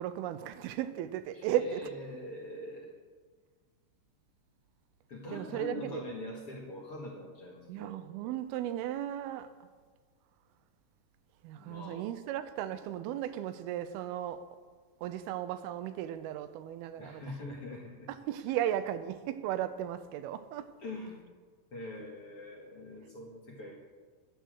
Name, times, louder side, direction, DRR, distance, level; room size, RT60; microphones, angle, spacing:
voice 1, 0.0-1.9 5.3-6.0 7.7-9.5 11.4-14.4 15.0-17.2 18.3-20.7, right 11 dB, 90° right, 2.5 m, -35 dB
voice 2, 1.3-2.9 5.1-8.0 11.6-12.1 17.0-18.1 20.8-21.2 21.7-23.7, left 1 dB, 50° left, 1.9 m, -43 dB
11.0 x 8.1 x 6.3 m
omnidirectional pair, 4.4 m